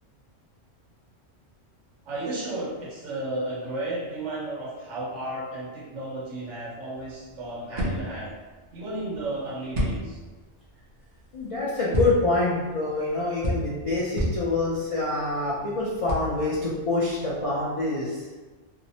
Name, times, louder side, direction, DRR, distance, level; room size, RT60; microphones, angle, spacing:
voice 1, 2.0-8.4 8.7-10.2, right 2 dB, 70° right, -6 dB, 1.2 m, -33 dB
sound 1, 6.9-17.7, equal, 50° right, 0.6 m, -33 dB
voice 2, 11.3-18.3, left 2 dB, 65° left, -7 dB, 0.3 m, -26 dB
2.7 x 2.0 x 2.7 m, 1.3 s
omnidirectional pair, 1.3 m